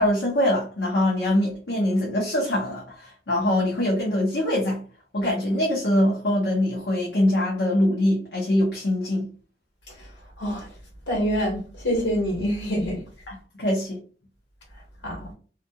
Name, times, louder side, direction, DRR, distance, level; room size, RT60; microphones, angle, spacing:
voice 1, 0.0-4.8 5.1-9.3 13.3-14.0, left 1 dB, 65° left, 0.7 m, -23 dB
voice 2, 11.1-13.0 15.0-15.3, equal, 85° left, 1.3 m, -26 dB
2.7 x 2.4 x 2.3 m
head